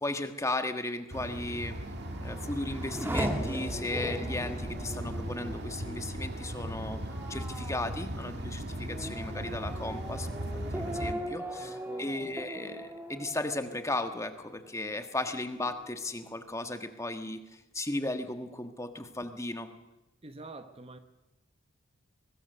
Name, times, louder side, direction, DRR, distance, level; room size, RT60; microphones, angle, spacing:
voice 1, 0.0-1.8 2.1-10.3 10.7-19.7, left 2 dB, 15° left, 1.5 m, -36 dB
sound 1, 1.1-11.1, right 1 dB, 55° right, 2.1 m, -38 dB
Race car auto racing / Accelerating revving vroom, 1.8-14.9 15.3-16.0, right 1 dB, 10° right, 1.8 m, -40 dB
voice 2, 11.6-12.3 20.2-21.0, right 2 dB, 30° right, 1.0 m, -46 dB
24.0 x 20.5 x 6.8 m
head